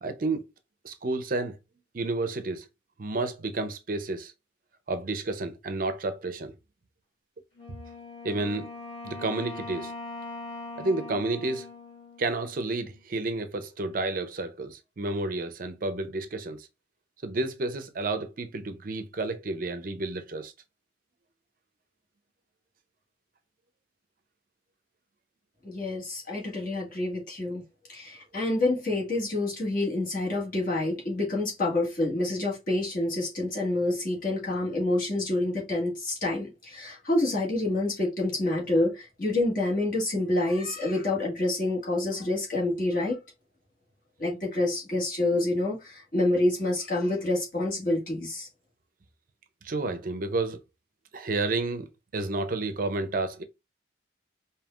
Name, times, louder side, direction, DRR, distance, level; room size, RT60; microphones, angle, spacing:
voice 1, 0.0-0.4 0.8-1.6 1.9-2.7 3.0-4.3 4.9-6.5 8.2-8.7 9.0-9.9 10.8-11.7 12.2-16.7 17.2-20.5 49.6-50.6 51.1-51.9 52.1-53.4, right 2 dB, 45° right, 0.5 m, -30 dB
Wind instrument woodwind instrument, 7.6-13.0, left 2 dB, 35° left, 1.8 m, -41 dB
voice 2, 25.6-27.6 27.9-43.2 44.2-48.5, left 2 dB, 50° left, 1.8 m, -27 dB
5.3 x 2.7 x 2.3 m
head